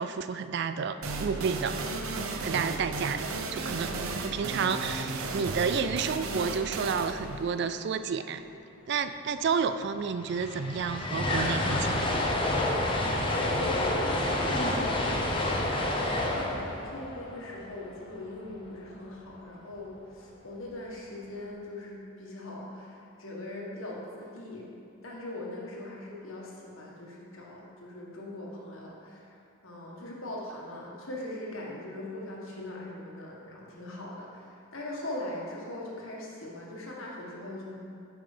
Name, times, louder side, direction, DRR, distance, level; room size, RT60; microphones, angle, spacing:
voice 1, 0.0-1.8 2.4-3.9 4.2-8.4 8.9-12.1, right 6 dB, 50° right, 10 dB, 0.3 m, -30 dB
sound 1, 1.0-8.5, right 3 dB, 75° right, 0.7 m, -35 dB
sound 2, 9.7-9.8 10.0-18.2, left 1 dB, 25° left, 0.8 m, -29 dB
voice 2, 13.4-15.2 15.6-24.7 25.0-29.3 29.6-37.8, left 1 dB, 70° left, -3 dB, 1.6 m, -41 dB
9.0 x 5.8 x 5.0 m, 2.6 s
head